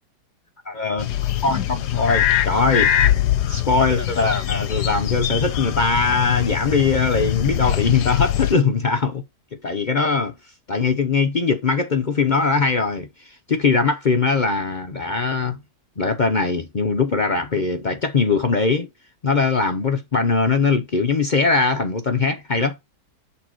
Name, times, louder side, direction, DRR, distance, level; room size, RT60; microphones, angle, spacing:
voice 1, 0.7-1.1 1.4-3.1 3.5-9.2 9.6-10.3 10.7-15.6 16.0-18.9 19.2-22.8, left 4 dB, 60° left, 0.4 m, -21 dB
sound 1, 1.0-8.6, left 11 dB, 75° left, 1.4 m, -22 dB
7.6 x 4.3 x 4.4 m
omnidirectional pair, 1.8 m